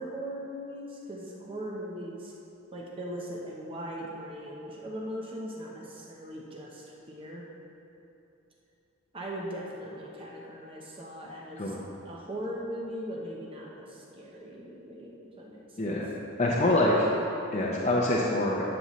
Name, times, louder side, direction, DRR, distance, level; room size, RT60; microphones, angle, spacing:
voice 1, 0.0-2.3 2.7-7.4 9.1-11.7 12.0-16.0, equal, 25° right, -3 dB, 0.8 m, -39 dB
voice 2, 16.4-17.1 17.5-18.6, left 1 dB, 35° left, -4 dB, 0.7 m, -25 dB
11.0 x 6.9 x 3.1 m, 2.8 s
head